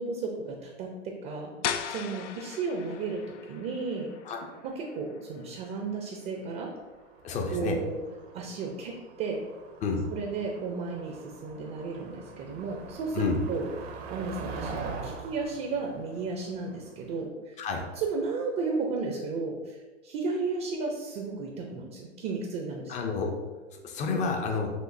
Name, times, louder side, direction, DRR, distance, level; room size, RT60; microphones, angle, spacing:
voice 1, 0.0-1.5 1.9-4.1 4.6-6.7 7.5-8.0 8.3-9.4 10.1-13.7 14.1-17.6 17.9-23.0, right 4 dB, 25° right, 1 dB, 0.5 m, -34 dB
sound 1, 1.6-7.3, left 8 dB, 80° left, 0.5 m, -39 dB
Motor vehicle (road), 6.9-17.2, right 4 dB, 60° right, 0.8 m, -43 dB
voice 2, 7.2-7.8 9.8-10.1 13.1-13.4 17.6-17.8 22.9-23.3 23.8-24.7, left 4 dB, 20° left, 3 dB, 0.5 m, -29 dB
6.3 x 2.6 x 2.6 m, 1.2 s
hypercardioid pair, 110°, 36 cm